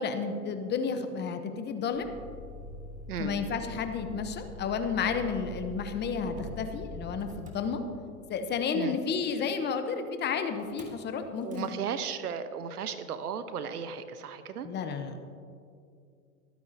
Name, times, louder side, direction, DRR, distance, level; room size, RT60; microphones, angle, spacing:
voice 1, 0.0-2.1 3.2-7.8 8.3-11.7 14.6-15.4, left 5 dB, 25° left, 8 dB, 0.9 m, -32 dB
Motor vehicle (road), 1.9-8.3 10.6-11.0 11.4-11.7, left 1 dB, 15° right, 1.8 m, -44 dB
voice 2, 3.1-3.4 8.7-9.0 11.4-14.7, right 7 dB, 85° right, 11 dB, 1.0 m, -35 dB
24.0 x 9.4 x 2.8 m, 2.4 s
hypercardioid pair, 115°, 44 cm